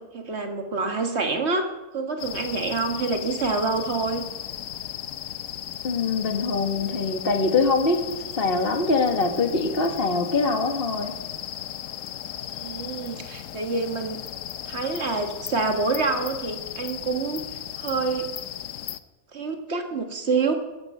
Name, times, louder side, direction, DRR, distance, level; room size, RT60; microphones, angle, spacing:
voice 1, 0.0-1.7 1.9-4.3 12.6-14.2 14.7-17.4 17.8-18.3 19.3-20.6, right 4 dB, 50° right, 5 dB, 1.8 m, -27 dB
sound 1, 2.2-19.0, left 11 dB, 70° left, 1.0 m, -36 dB
voice 2, 5.8-8.0 8.4-11.1, left 3 dB, 40° left, 4 dB, 1.8 m, -23 dB
20.0 x 9.5 x 5.5 m, 1.2 s
omnidirectional pair, 1.5 m